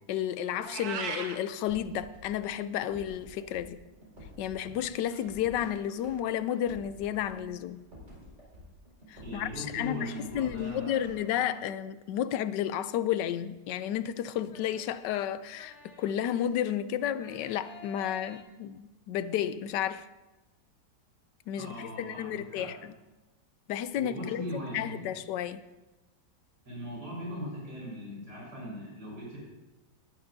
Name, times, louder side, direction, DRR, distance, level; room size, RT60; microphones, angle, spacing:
voice 1, 0.1-3.8 4.4-7.9 9.1-20.1 21.5-22.9 23.7-24.4 24.7-25.6, left 10 dB, 80° left, 1.2 m, -32 dB
Meow, 0.6-1.4, right 6 dB, 65° right, 1.3 m, -36 dB
sound 1, 1.7-11.6, equal, 40° right, 5.1 m, -50 dB
voice 2, 9.2-11.1 21.6-22.7 23.9-25.1 26.7-29.4, equal, 80° right, 5.4 m, -39 dB
sound 2, 11.1-12.0 13.8-16.7 17.1-18.4, left 2 dB, 45° left, 1.4 m, -52 dB
19.0 x 10.5 x 2.7 m
omnidirectional pair, 1.9 m